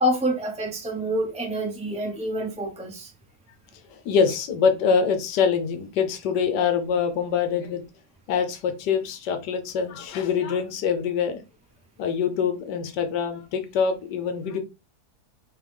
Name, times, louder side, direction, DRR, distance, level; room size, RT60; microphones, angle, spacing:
voice 1, 0.0-3.1, equal, 10° right, 0.3 m, -27 dB
voice 2, 4.0-7.8 8.3-11.4 12.0-14.6, left 6 dB, 80° left, 1.3 m, -24 dB
3.7 x 3.7 x 3.5 m
omnidirectional pair, 1.8 m